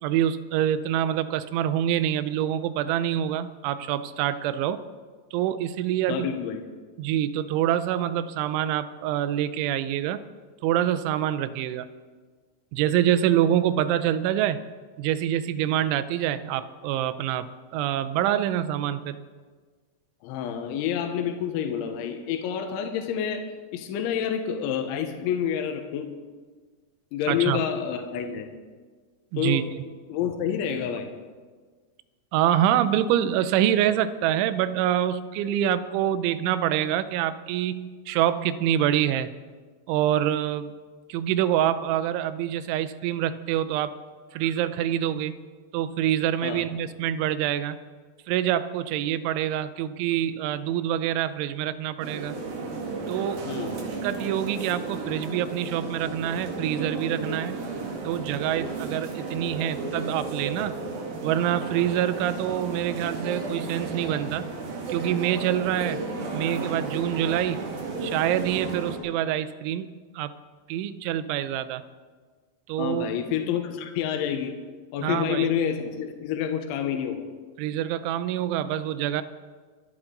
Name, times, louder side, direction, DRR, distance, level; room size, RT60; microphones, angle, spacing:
voice 1, 0.0-4.8 5.3-6.3 7.0-10.2 10.6-11.9 12.7-14.6 15.0-19.2 27.3-27.7 29.3-29.6 32.3-39.3 39.9-40.7 41.1-43.9 44.3-45.4 45.7-47.8 48.3-52.4 53.1-53.4 54.0-57.6 58.0-60.7 61.2-64.5 64.9-66.0 66.3-67.6 68.0-70.3 70.7-71.8 72.7-73.2 75.0-75.5 77.6-79.2, right 11 dB, 85° right, 13 dB, 3.1 m, -26 dB
voice 2, 6.1-6.7 20.2-26.1 27.1-28.5 29.4-29.7 30.1-31.1 46.4-46.6 53.5-53.7 72.8-74.6 74.9-77.3, left 8 dB, 85° left, 5 dB, 3.5 m, -28 dB
sound 1, 52.0-69.0, right 3 dB, 55° right, 3.6 m, -33 dB
26.0 x 12.0 x 3.9 m, 1.5 s
omnidirectional pair, 5.4 m